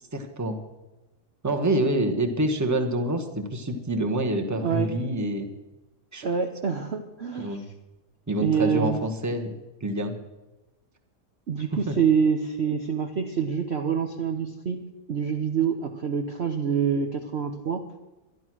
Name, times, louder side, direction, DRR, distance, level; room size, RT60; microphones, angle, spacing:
voice 1, 0.1-0.6 1.4-5.5 6.1-6.2 7.4-7.7 8.3-9.5 9.8-10.1 11.9-12.0, right 1 dB, 10° right, 5 dB, 1.1 m, -26 dB
voice 2, 4.6-4.9 6.2-7.6 8.4-9.0 11.5-14.8 15.1-17.9, right 6 dB, 50° right, 5 dB, 0.9 m, -26 dB
12.0 x 11.5 x 6.2 m, 1.0 s
omnidirectional pair, 1.8 m